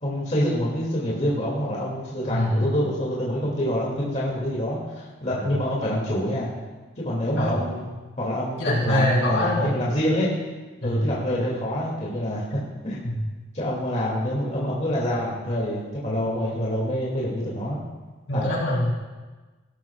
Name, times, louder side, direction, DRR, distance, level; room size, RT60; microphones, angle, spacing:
voice 1, 0.0-6.5 7.0-7.9 8.2-10.3 10.8-13.0 13.5-17.8 18.3-18.4, equal, 35° left, -6 dB, 2.3 m, -26 dB
voice 2, 2.3-2.7 5.3-5.4 7.4-7.7 8.6-9.7 10.8-11.1 13.0-13.2 18.3-18.9, left 1 dB, 75° left, -5 dB, 4.2 m, -24 dB
17.5 x 13.0 x 2.3 m, 1.3 s
head